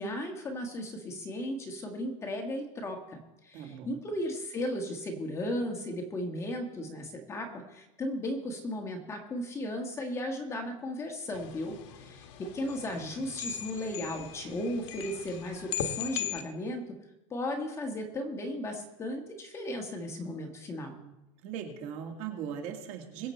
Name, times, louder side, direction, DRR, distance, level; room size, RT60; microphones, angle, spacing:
voice 1, 0.0-17.0 17.3-21.0, left 1 dB, 15° left, 3 dB, 1.4 m, -36 dB
voice 2, 3.5-4.0 20.9-21.1 21.4-23.3, right 8 dB, 45° right, 3 dB, 2.2 m, -39 dB
sound 1, 11.3-16.4, left 9 dB, 65° left, 1.4 m, -39 dB
22.5 x 7.7 x 4.4 m, 0.96 s
supercardioid pair, 170°, 17 cm